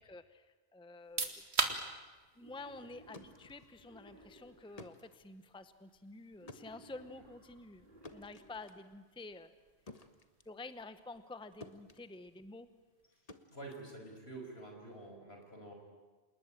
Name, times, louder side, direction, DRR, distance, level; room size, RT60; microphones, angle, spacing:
voice 1, 0.0-1.4 2.4-9.5 10.5-12.7, left 3 dB, 5° left, 12 dB, 0.8 m, -50 dB
sound 1, 0.9-13.6, right 3 dB, 90° right, 2.3 m, -45 dB
sound 2, 1.5-11.4 11.6-14.6, left 3 dB, 35° left, 1.4 m, -57 dB
Wild animals, 2.4-4.8 6.4-8.8, right 2 dB, 50° right, 5.5 m, -60 dB
voice 2, 13.5-15.7, right 2 dB, 75° left, 2 dB, 6.0 m, -48 dB
28.0 x 20.0 x 9.0 m, 1.3 s
omnidirectional pair, 1.1 m